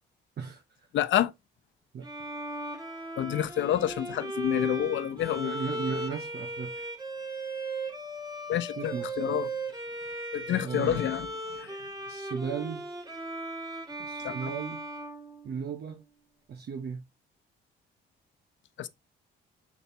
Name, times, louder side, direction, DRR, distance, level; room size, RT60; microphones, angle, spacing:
voice 1, 0.9-1.3 3.2-5.5 8.5-9.5 10.3-11.3 11.6-11.8 14.2-14.5 18.8-18.9, left 11 dB, 70° left, 0.7 m, -28 dB
Bowed string instrument, 2.0-15.9, right 2 dB, 20° right, 2.0 m, -37 dB
voice 2, 5.4-6.9 8.8-9.2 10.6-11.1 12.1-12.9 14.0-14.8 15.4-16.0 16.5-17.1, right 6 dB, 55° right, 1.0 m, -36 dB
7.1 x 4.2 x 3.4 m
cardioid pair, 90°, 20 cm